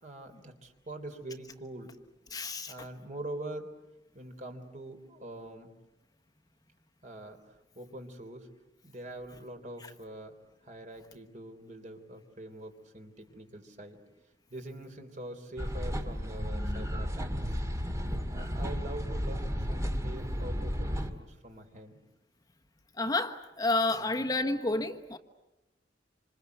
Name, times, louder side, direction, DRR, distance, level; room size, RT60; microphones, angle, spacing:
voice 1, 0.0-1.9 2.7-3.7 4.1-5.7 7.0-7.4 7.8-8.5 8.8-10.3 10.6-14.0 14.5-17.6 18.3-22.0 23.9-24.2, right 1 dB, 45° right, 3.4 m, -44 dB
voice 2, 2.3-2.7 23.0-25.2, left 2 dB, 20° left, 1.1 m, -30 dB
sound 1, 15.6-21.1, equal, 20° right, 2.1 m, -33 dB
27.0 x 26.5 x 8.2 m
head